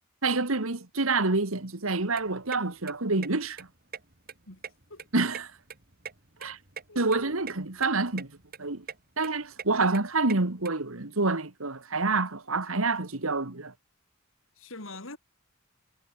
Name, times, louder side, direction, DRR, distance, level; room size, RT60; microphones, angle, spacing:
voice 1, 0.2-3.7 5.1-5.5 6.4-6.6 7.0-8.3 8.6-8.9 9.2-13.7, right 3 dB, 85° right, 2.1 m, -27 dB
sound 1, 1.9-10.7, right 6 dB, 45° right, 4.0 m, -44 dB
voice 2, 14.6-15.2, left 2 dB, 70° left, 5.3 m, -43 dB
head